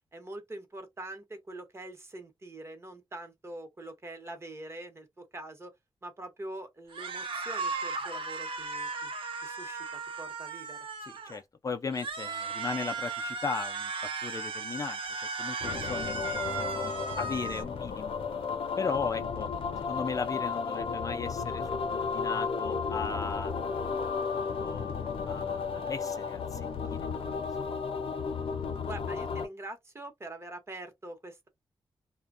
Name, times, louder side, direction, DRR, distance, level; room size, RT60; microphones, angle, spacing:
voice 1, 0.1-5.7 6.0-9.1 9.4-10.8 28.9-31.5, right 2 dB, 30° right, 0.8 m, -44 dB
sound 1, 6.9-11.4 11.9-17.6, right 4 dB, 70° right, 0.7 m, -36 dB
voice 2, 11.0-13.9 14.2-18.2 18.8-19.5 19.8-23.5 24.3-27.4, left 5 dB, 35° left, 0.4 m, -37 dB
sound 2, 15.6-29.5, left 5 dB, 75° left, 0.6 m, -33 dB
2.5 x 2.2 x 2.4 m
wide cardioid pair, 110°, 9 cm